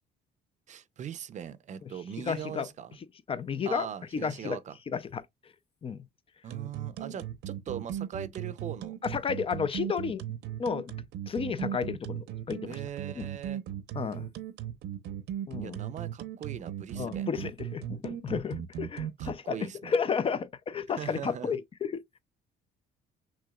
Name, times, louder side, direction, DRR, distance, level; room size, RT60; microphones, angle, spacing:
voice 1, 0.7-3.0 3.6-4.7 6.4-9.0 12.6-13.6 15.6-17.3 19.2-19.9 21.0-21.5, right 9 dB, 45° right, 0.6 m, -40 dB
voice 2, 2.3-2.7 3.3-3.9 4.1-4.6 4.9-5.2 5.8-6.1 9.0-10.2 10.6-10.9 11.3-12.8 13.1-13.3 13.9-14.3 15.5-15.8 17.0-22.0, left 6 dB, 35° left, 0.5 m, -32 dB
sound 1, 6.5-19.3, right 11 dB, 85° right, 0.9 m, -37 dB
6.3 x 3.4 x 2.3 m
cardioid pair, 110°, 17 cm